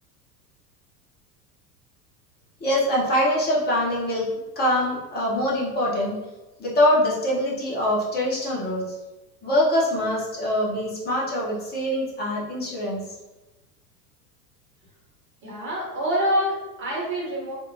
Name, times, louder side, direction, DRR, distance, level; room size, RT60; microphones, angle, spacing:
voice 1, 2.6-4.3 4.6-6.2 6.6-8.8 9.4-13.0, left 1 dB, 20° left, -4 dB, 0.9 m, -23 dB
voice 2, 15.4-17.5, equal, 25° right, -4 dB, 1.0 m, -26 dB
3.5 x 2.0 x 2.7 m, 1.1 s
figure-of-eight pair, 80°, 49 cm